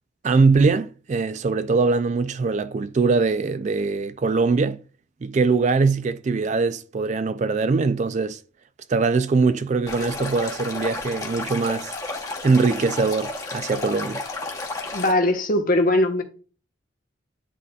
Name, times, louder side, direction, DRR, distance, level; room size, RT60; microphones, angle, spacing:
voice 1, 0.2-4.8 5.2-8.4 8.9-11.9 12.4-14.2, right 4 dB, 40° right, 0.3 m, -22 dB
Stream, 9.9-15.1, left 2 dB, 20° left, 1.0 m, -32 dB
voice 2, 14.9-16.2, left 1 dB, 45° left, 1.1 m, -20 dB
10.0 x 4.0 x 2.3 m
head